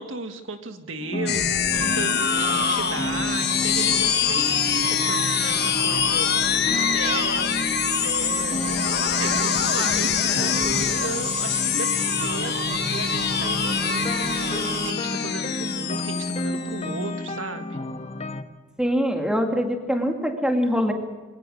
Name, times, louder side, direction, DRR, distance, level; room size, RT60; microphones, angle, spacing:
voice 1, 0.0-17.7, right 3 dB, 85° right, 6 dB, 1.8 m, -35 dB
sound 1, 1.0-18.4, left 1 dB, 35° left, 1.1 m, -31 dB
sound 2, 1.3-17.1, left 9 dB, 55° left, 1.2 m, -25 dB
sound 3, 1.7-14.9, right 6 dB, 35° right, 0.9 m, -33 dB
voice 2, 18.8-20.9, equal, 5° right, 3 dB, 2.4 m, -23 dB
22.0 x 19.0 x 6.5 m, 1.3 s
head